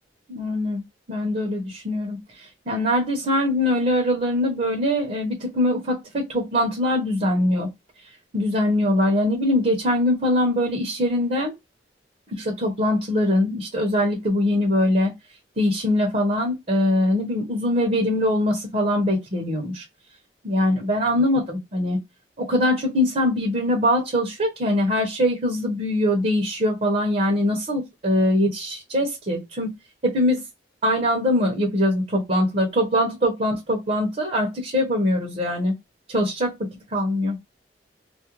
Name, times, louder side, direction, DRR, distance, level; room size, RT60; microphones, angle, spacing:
voice 1, 0.3-0.8 1.1-7.7 8.3-11.6 12.3-15.1 15.6-19.8 20.4-22.0 22.4-29.7 30.0-30.4 30.8-35.7 36.1-37.4, left 1 dB, 45° right, 0.7 m, -22 dB
2.4 x 2.1 x 2.9 m
head